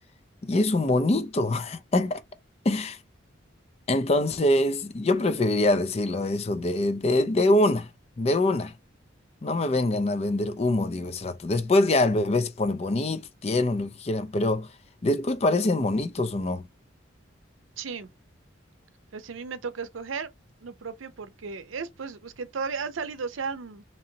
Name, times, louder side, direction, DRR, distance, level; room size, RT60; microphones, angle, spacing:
voice 1, 0.4-2.2 2.6-3.0 3.9-7.9 8.2-8.7 9.4-14.7 15.0-16.6, left 2 dB, 30° left, 0.4 m, -24 dB
voice 2, 17.8-18.1 19.1-20.3 20.6-23.8, right 5 dB, 85° right, 0.6 m, -35 dB
3.9 x 3.0 x 2.7 m
head